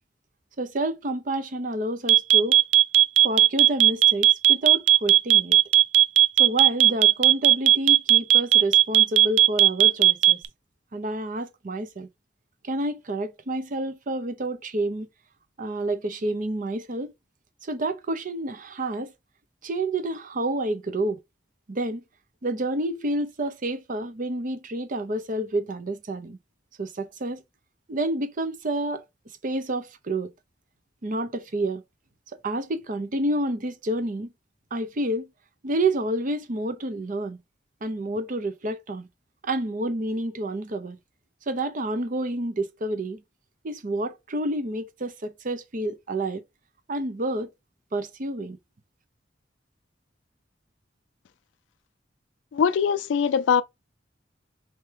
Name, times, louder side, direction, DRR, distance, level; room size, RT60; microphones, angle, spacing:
voice 1, 0.6-2.6 3.2-5.6 6.4-10.4 10.9-12.1 12.6-15.1 15.6-17.1 17.6-19.1 19.6-21.2 21.7-22.0 22.4-26.4 26.8-27.4 27.9-29.0 29.4-30.3 31.0-31.8 32.3-34.3 34.7-35.3 35.6-37.4 37.8-39.1 39.4-41.0 41.5-43.2 43.6-46.4 46.9-47.5 47.9-48.6, right 1 dB, 45° right, 0.6 m, -29 dB
sound 1, 2.1-10.5, right 13 dB, 90° right, 0.3 m, -15 dB
voice 2, 52.5-53.6, left 7 dB, 85° left, 0.3 m, -22 dB
4.5 x 2.7 x 3.3 m
head